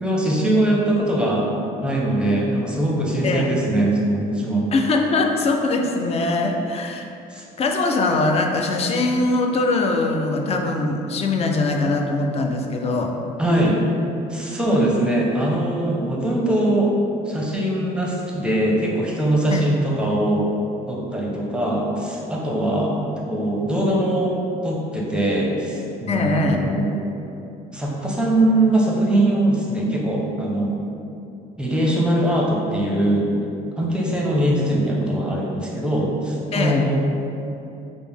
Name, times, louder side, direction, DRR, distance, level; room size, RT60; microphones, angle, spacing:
voice 1, 0.0-1.5 1.8-4.7 7.3-7.4 13.4-13.8 14.3-16.9 17.3-20.5 20.9-24.4 24.6-26.9 27.7-30.8 31.6-33.3 33.8-37.0, right 1 dB, 5° right, -3 dB, 0.7 m, -21 dB
voice 2, 4.7-7.1 7.6-13.1 19.5-19.7 26.1-26.6 36.5-36.9, left 3 dB, 35° left, 3 dB, 0.4 m, -22 dB
4.9 x 2.0 x 3.4 m, 2.8 s
cardioid pair, 110°, 17 cm